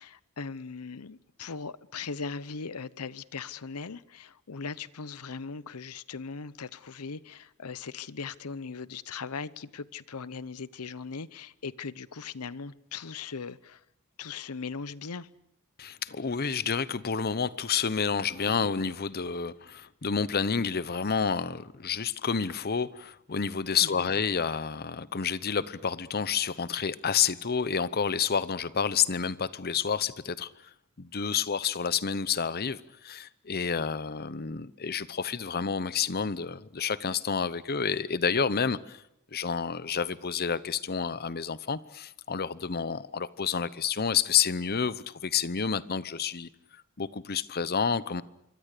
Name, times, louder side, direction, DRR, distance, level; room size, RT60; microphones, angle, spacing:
voice 1, 0.0-13.8 14.2-15.3 23.8-24.1, left 5 dB, 90° left, 0.8 m, -39 dB
voice 2, 15.8-30.5 31.0-39.0 39.3-46.5 47.0-48.2, left 6 dB, 45° left, 0.8 m, -29 dB
26.5 x 23.5 x 6.7 m
head